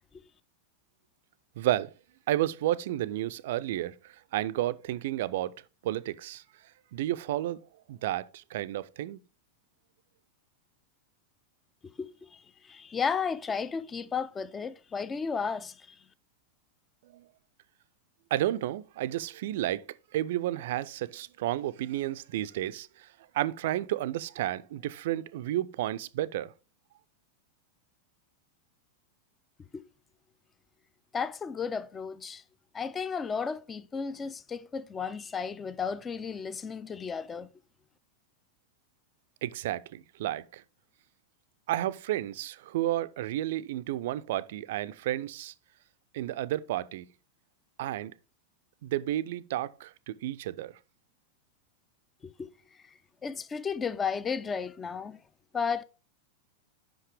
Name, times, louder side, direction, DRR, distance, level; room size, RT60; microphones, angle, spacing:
voice 1, 1.6-1.9 2.3-5.5 5.8-6.4 6.9-7.6 7.9-9.2 17.1-17.2 18.3-19.9 20.1-22.9 23.3-26.5 39.4-40.6 41.7-45.5 46.1-47.1 47.8-48.1 48.8-50.7, right 14 dB, 55° right, 0.4 m, -31 dB
voice 2, 12.0-12.4 12.7-15.7 29.7-29.8 31.1-32.4 32.7-37.5 52.2-52.5 53.2-55.2 55.5-55.8, left 6 dB, 20° left, 0.5 m, -33 dB
8.3 x 5.5 x 3.3 m
figure-of-eight pair, 90°, 0 cm